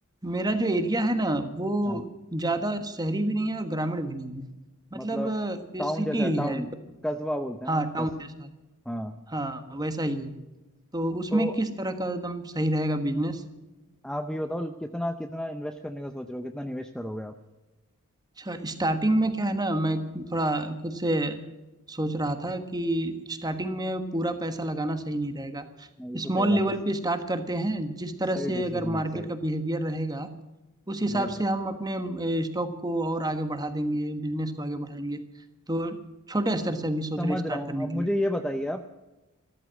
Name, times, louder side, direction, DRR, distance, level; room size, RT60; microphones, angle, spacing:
voice 1, 0.2-4.5 4.9-6.7 7.7-8.5 9.3-10.4 10.9-13.4 18.4-21.4 21.9-25.9 26.1-30.3 30.9-35.2 35.7-36.0 36.3-38.1, right 1 dB, 20° right, 8 dB, 1.3 m, -28 dB
voice 2, 4.9-5.3 5.8-6.7 7.0-8.1 8.9-9.2 11.3-11.6 14.0-17.3 26.0-26.6 28.4-29.3 31.1-31.3 37.2-38.8, equal, 5° left, 6 dB, 0.6 m, -32 dB
14.5 x 13.5 x 6.3 m, 1.1 s
head